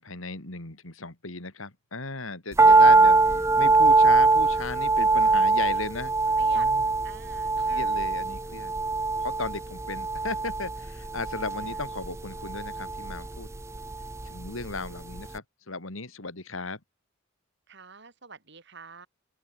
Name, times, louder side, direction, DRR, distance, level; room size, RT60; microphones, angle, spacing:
voice 1, 0.0-6.1 6.5-6.9 7.6-8.7 9.2-13.5 14.2-16.8, left 3 dB, 85° left, 3.5 m, -36 dB
sound 1, 2.6-14.9 15.1-15.2, right 3 dB, 15° right, 0.5 m, -22 dB
voice 2, 2.7-3.2 6.4-6.7 7.0-8.1 11.5-11.8 17.7-19.1, right 5 dB, 60° right, 4.9 m, -48 dB
open air
head